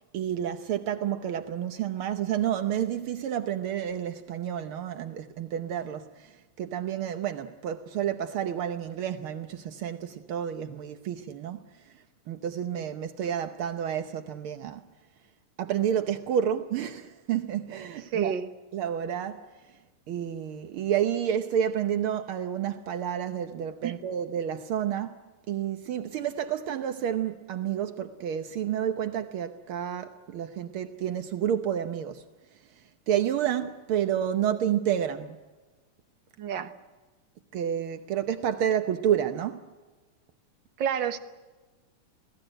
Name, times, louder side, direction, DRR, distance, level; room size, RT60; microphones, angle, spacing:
voice 1, 0.1-6.1 6.6-11.6 12.3-14.8 15.6-18.3 18.7-19.5 20.1-25.2 25.5-32.2 33.1-35.4 37.5-39.6, right 9 dB, 80° right, 1.2 m, -30 dB
voice 2, 18.1-18.5 23.8-24.0 36.4-36.7 40.8-41.2, right 8 dB, 55° right, 1.3 m, -29 dB
27.5 x 17.5 x 9.0 m
omnidirectional pair, 3.7 m